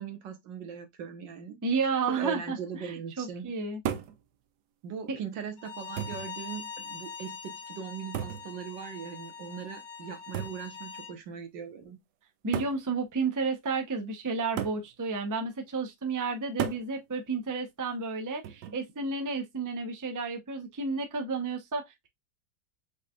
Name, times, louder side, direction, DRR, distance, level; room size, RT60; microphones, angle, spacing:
voice 1, 0.0-1.6 2.1-3.5 4.8-12.0, right 7 dB, 90° right, 1.7 m, -40 dB
voice 2, 1.6-3.8 5.1-5.2 12.4-22.1, right 4 dB, 25° right, 0.3 m, -32 dB
sound 1, 3.9-4.2 5.2-5.3 6.0-6.3 8.1-8.5 10.3-10.6 11.7-11.8 12.5-12.8 14.6-14.9 16.6-16.9 18.4-18.8, right 9 dB, 75° right, 1.2 m, -34 dB
Bowed string instrument, 5.6-11.1, left 6 dB, 80° left, 2.0 m, -43 dB
5.0 x 4.1 x 2.3 m
omnidirectional pair, 1.9 m